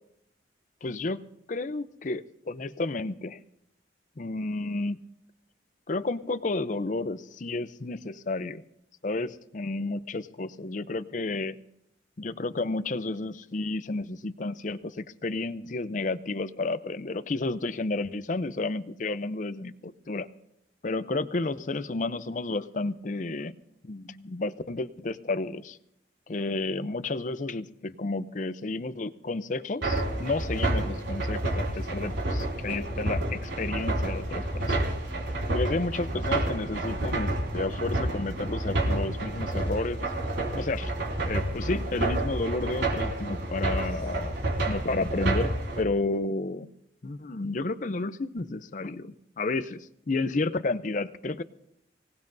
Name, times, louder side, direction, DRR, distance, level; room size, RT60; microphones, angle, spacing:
voice 1, 0.8-3.4 4.2-5.0 5.9-8.6 9.0-11.6 12.2-20.3 20.8-23.6 23.8-25.8 26.3-34.9 35.5-40.1 40.5-40.9 41.2-44.4 44.7-46.7 47.0-51.4, left 2 dB, 45° left, 14 dB, 0.5 m, -31 dB
sound 1, 29.8-45.8, right 1 dB, 80° right, 4.3 m, -29 dB
24.5 x 18.5 x 2.6 m, 0.79 s
head